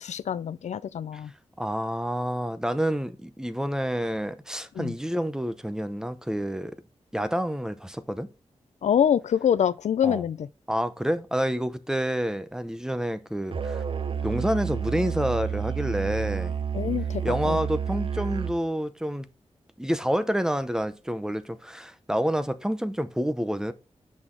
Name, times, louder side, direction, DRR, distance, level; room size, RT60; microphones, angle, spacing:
voice 1, 0.0-1.3 4.8-4.9 8.8-10.5 16.7-17.6, left 8 dB, 85° left, 0.4 m, -25 dB
voice 2, 1.6-6.8 7.1-8.3 10.0-10.2 10.7-13.8 14.2-16.5 17.2-19.3 19.8-23.7, equal, 5° right, 0.6 m, -28 dB
Musical instrument, 13.5-18.6, right 7 dB, 50° right, 0.5 m, -30 dB
6.3 x 6.0 x 3.7 m
wide cardioid pair, 130°, 12 cm